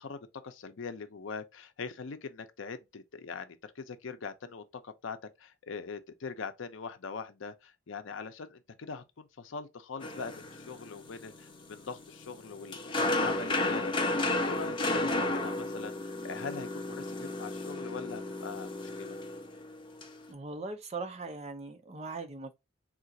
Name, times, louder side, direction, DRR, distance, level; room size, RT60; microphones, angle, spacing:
voice 1, 0.0-14.1 14.5-19.2, left 5 dB, 70° left, 0.5 m, -42 dB
sound 1, 10.0-20.2, left 2 dB, 25° left, 0.6 m, -33 dB
voice 2, 20.3-22.5, right 3 dB, 30° right, 0.5 m, -40 dB
3.7 x 2.4 x 2.7 m
head